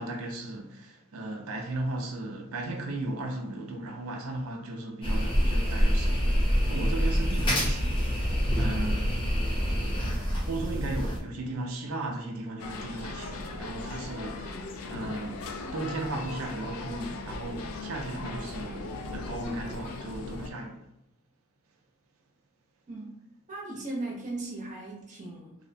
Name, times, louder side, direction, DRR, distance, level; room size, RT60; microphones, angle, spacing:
voice 1, 0.0-8.2 8.5-9.2 10.5-20.9, right 2 dB, 70° right, 0.4 m, -36 dB
sound 1, 5.0-11.2, equal, 25° left, 0.6 m, -26 dB
sound 2, 12.6-20.5, left 3 dB, 75° left, 0.3 m, -38 dB
voice 2, 22.9-23.2 23.5-25.5, right 2 dB, 35° right, 0.7 m, -37 dB
2.6 x 2.1 x 2.6 m
head